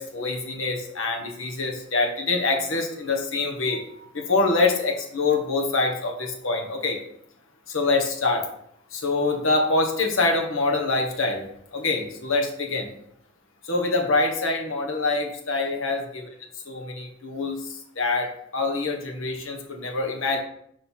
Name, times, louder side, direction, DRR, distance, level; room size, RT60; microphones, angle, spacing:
voice 1, 0.0-3.8 4.1-7.0 7.7-8.4 8.9-11.4 11.7-12.9 13.7-16.3 16.7-17.6 18.0-18.3 18.5-20.4, left 3 dB, 70° left, 2 dB, 1.4 m, -25 dB
5.2 x 4.6 x 5.6 m, 0.69 s
head